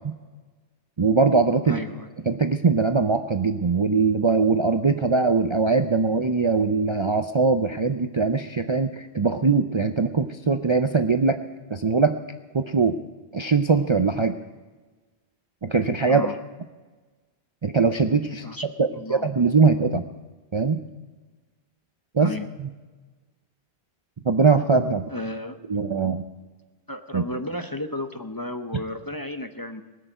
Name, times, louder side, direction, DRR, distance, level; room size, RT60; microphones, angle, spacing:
voice 1, 1.0-1.8 2.3-11.4 11.7-12.2 12.5-13.0 13.3-14.4 15.6-16.3 17.6-18.5 18.8-20.0 20.5-20.8 22.1-22.3 22.6-22.7 24.2-25.0 25.7-26.2 27.1-27.2, right 4 dB, 35° right, 7 dB, 0.5 m, -21 dB
voice 2, 1.6-2.1 16.1-16.4 18.4-19.4 22.2-22.5 25.1-25.6 26.9-29.8, left 1 dB, 25° left, 7 dB, 0.6 m, -33 dB
20.0 x 6.7 x 8.9 m, 1.3 s
omnidirectional pair, 1.1 m